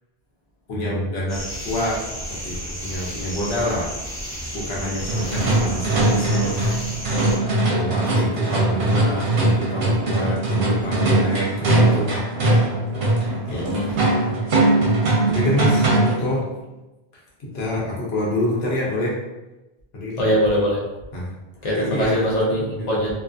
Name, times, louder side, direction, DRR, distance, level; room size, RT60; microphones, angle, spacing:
voice 1, 0.7-2.0 2.4-3.9 4.5-6.7 7.7-12.2 13.5-13.6 15.3-15.9 16.2-16.4 17.4-19.1 19.9-20.4 21.1-21.3 21.7-22.3 22.8-23.1, left 1 dB, 80° left, -4 dB, 1.0 m, -27 dB
sound 1, 1.3-7.4, equal, 25° left, 0.4 m, -32 dB
sound 2, 5.1-16.3, right 2 dB, 75° right, 0.9 m, -20 dB
voice 2, 13.5-14.0 20.2-20.8 21.6-23.1, equal, 45° left, -5 dB, 0.7 m, -22 dB
2.5 x 2.4 x 2.3 m, 1.0 s
omnidirectional pair, 1.0 m